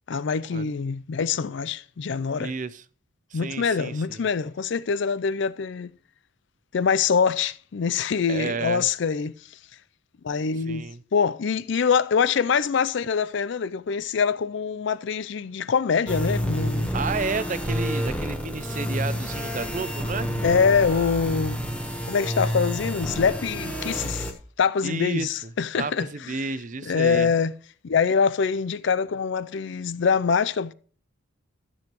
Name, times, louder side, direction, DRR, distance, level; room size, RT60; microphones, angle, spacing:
voice 1, 0.1-2.5 3.3-5.9 6.7-9.3 10.2-10.9 11.1-16.9 20.4-21.6 22.1-24.3 24.6-26.1 26.8-27.5 27.8-30.7, left 6 dB, 55° left, 0.4 m, -24 dB
voice 2, 2.4-2.8 3.3-4.2 8.3-8.9 10.7-11.0 16.9-20.3 24.8-25.5 25.8-27.3, right 4 dB, 35° right, 0.5 m, -31 dB
sound 1, 16.1-24.3, equal, 5° left, 1.1 m, -29 dB
13.5 x 7.0 x 3.0 m
head